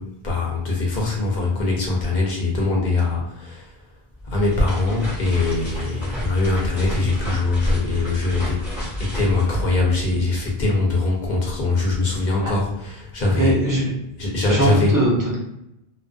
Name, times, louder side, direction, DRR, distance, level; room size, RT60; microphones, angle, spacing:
voice 1, 0.0-3.7 4.2-8.6 9.0-13.6 14.2-15.0, left 2 dB, 55° left, -2 dB, 0.7 m, -22 dB
sound 1, 4.1-10.5, equal, ahead, 1.0 m, -30 dB
voice 2, 13.3-13.8 14.5-15.4, right 1 dB, 20° right, -5 dB, 0.7 m, -20 dB
2.4 x 2.2 x 2.3 m, 0.82 s
omnidirectional pair, 1.0 m